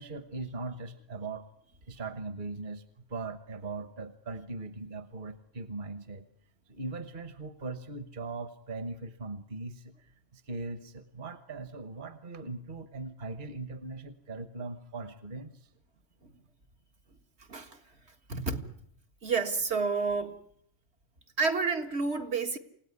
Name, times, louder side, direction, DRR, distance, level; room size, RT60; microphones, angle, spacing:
voice 1, 0.0-1.5 1.8-6.2 6.7-15.7, right 3 dB, 50° right, 1.4 m, -40 dB
voice 2, 18.3-18.7 19.2-20.4 21.4-22.6, right 4 dB, 75° right, 2.2 m, -30 dB
28.0 x 17.5 x 9.7 m
omnidirectional pair, 1.1 m